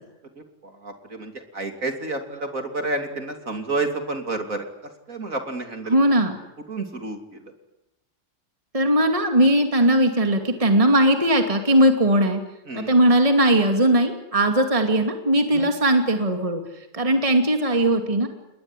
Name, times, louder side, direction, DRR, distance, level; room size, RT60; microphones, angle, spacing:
voice 1, 0.6-4.6 5.1-6.0 6.7-7.2 12.7-12.9 15.5-15.7, right 3 dB, 50° right, 5 dB, 3.4 m, -30 dB
voice 2, 5.9-6.4 8.7-12.4 12.7-16.6 16.9-18.3, right 1 dB, 20° right, 5 dB, 2.6 m, -19 dB
29.0 x 21.0 x 9.8 m, 0.92 s
omnidirectional pair, 1.8 m